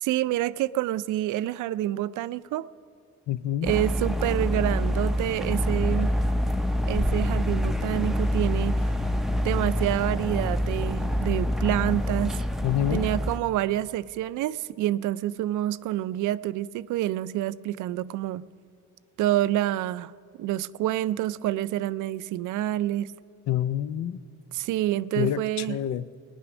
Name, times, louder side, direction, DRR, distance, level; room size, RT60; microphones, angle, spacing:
voice 1, 0.0-2.7 3.6-6.1 6.9-8.8 9.4-12.4 12.9-18.5 19.2-20.1 20.4-23.1 24.5-25.8, right 13 dB, 80° right, 0.4 m, -27 dB
voice 2, 3.3-3.7 12.6-13.1 23.5-24.2 25.2-26.1, left 11 dB, 65° left, 0.5 m, -27 dB
sound 1, 3.6-13.4, left 1 dB, ahead, 0.5 m, -26 dB
18.5 x 9.9 x 6.0 m
cardioid pair, 90°, 30 cm